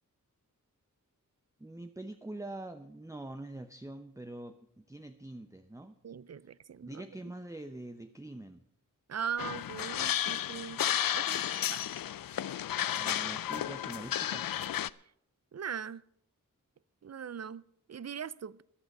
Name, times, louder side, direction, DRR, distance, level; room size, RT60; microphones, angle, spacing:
voice 1, 1.6-4.6 4.9-5.9 6.8-8.6 12.9-14.5, right 1 dB, 10° right, 0.7 m, -44 dB
voice 2, 6.0-7.0 9.1-11.4 11.7-11.9 15.5-16.0 17.0-18.6, right 7 dB, 50° right, 0.5 m, -40 dB
sound 1, 9.4-14.9, left 11 dB, 85° left, 0.5 m, -33 dB
14.0 x 10.5 x 5.4 m
wide cardioid pair, 100°, 33 cm